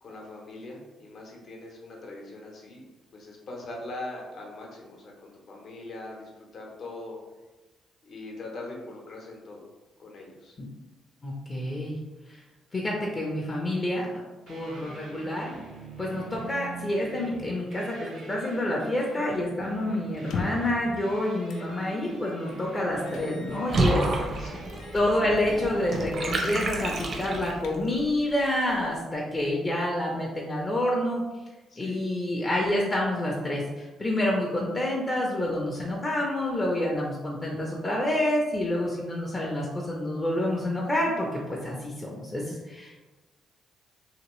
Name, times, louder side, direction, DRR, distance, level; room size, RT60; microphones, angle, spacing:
voice 1, 0.0-2.8 3.1-7.2 8.0-9.6 10.0-10.6 19.7-20.0 24.1-24.7 31.7-32.1, left 2 dB, 60° left, -1 dB, 0.8 m, -41 dB
voice 2, 11.2-12.0 12.7-14.1 14.5-15.5 16.0-24.0 24.9-31.2 31.8-42.9, left 1 dB, 30° left, -3 dB, 0.6 m, -28 dB
sound 1, 14.5-27.5, right 3 dB, 80° right, 0.8 m, -43 dB
sound 2, 20.2-20.8 21.5-21.7 22.1-22.2 23.1-24.2 24.7-25.0 25.4-25.7 26.1-26.4 26.7-26.8 27.3-28.1, left 4 dB, 75° left, 0.3 m, -39 dB
Water / Bathtub (filling or washing), 23.7-27.8, right 2 dB, 50° right, 0.6 m, -29 dB
2.9 x 2.6 x 3.0 m, 1.2 s
cardioid pair, 90°, 0 cm